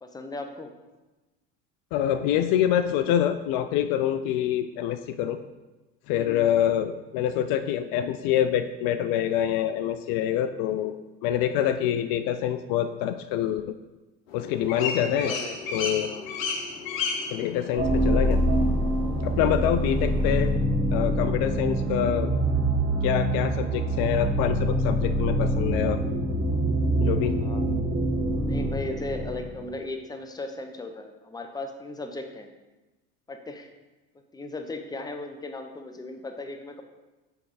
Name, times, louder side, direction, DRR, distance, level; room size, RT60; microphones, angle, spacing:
voice 1, 0.0-0.7 6.1-6.5 14.7-15.6 16.0-16.3 27.4-27.9 28.4-32.5 33.3-33.7 34.3-36.8, left 2 dB, 10° left, 5 dB, 0.7 m, -37 dB
voice 2, 1.9-5.4 6.1-10.9 11.2-13.6 14.3-15.3 15.7-16.1 17.3-18.4 19.2-20.5 20.9-22.3 23.0-26.0 27.0-27.4, left 10 dB, 60° left, 10 dB, 0.5 m, -26 dB
sound 1, 14.3-20.5, left 5 dB, 90° left, 0.9 m, -34 dB
sound 2, 17.8-29.6, right 1 dB, 25° right, 1.3 m, -25 dB
8.1 x 3.4 x 4.1 m, 1.1 s
hypercardioid pair, 80°, 39 cm